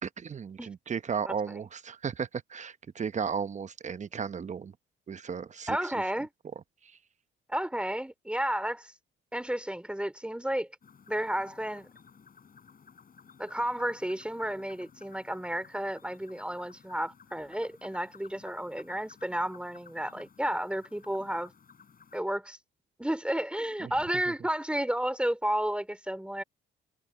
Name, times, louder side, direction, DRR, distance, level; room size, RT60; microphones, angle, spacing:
voice 1, 0.0-4.7 5.1-5.9 6.8-7.0 23.8-23.9, right 6 dB, 35° right, 0.9 m, -35 dB
voice 2, 5.7-6.3 7.5-8.9 9.3-10.7 11.1-11.9 13.4-21.5 22.1-22.6 23.0-26.4, right 1 dB, 5° right, 2.9 m, -32 dB
sound 1, 10.8-22.2, left 6 dB, 45° left, 5.9 m, -56 dB
cardioid pair, 90°, 20 cm